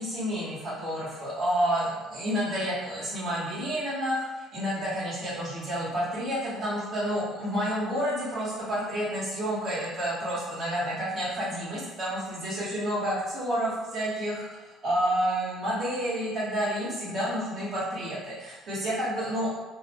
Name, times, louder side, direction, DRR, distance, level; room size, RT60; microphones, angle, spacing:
voice 1, 0.0-19.5, equal, 55° right, -9 dB, 1.1 m, -30 dB
2.6 x 2.0 x 3.0 m, 1.1 s
cardioid pair, 100°, 0 cm